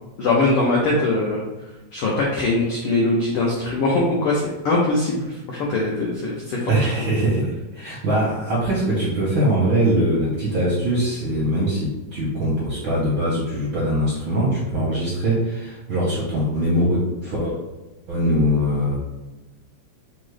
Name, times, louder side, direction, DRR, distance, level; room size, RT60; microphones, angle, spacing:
voice 1, 0.2-1.4 1.9-6.7, left 2 dB, 90° left, -3 dB, 1.2 m, -21 dB
voice 2, 6.7-17.6 18.1-19.0, right 1 dB, 70° right, -6 dB, 1.1 m, -22 dB
5.8 x 2.0 x 3.2 m, 1.1 s
omnidirectional pair, 3.3 m